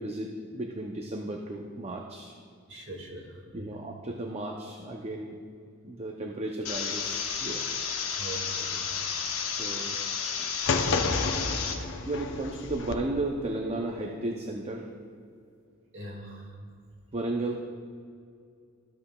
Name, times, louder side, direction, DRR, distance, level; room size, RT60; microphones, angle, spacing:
voice 1, 0.0-2.3 3.5-5.4 5.8-7.7 9.4-10.0 10.4-10.5 12.1-14.9 17.1-17.6, right 2 dB, 30° right, 2 dB, 0.5 m, -34 dB
voice 2, 2.7-3.7 8.2-9.0 15.9-16.6, right 2 dB, 65° right, -1 dB, 1.9 m, -42 dB
sound 1, 6.6-11.7, left 6 dB, 90° left, 0.8 m, -32 dB
sound 2, 10.7-12.9, left 4 dB, 60° left, 0.6 m, -30 dB
13.0 x 7.6 x 2.2 m, 2.3 s
head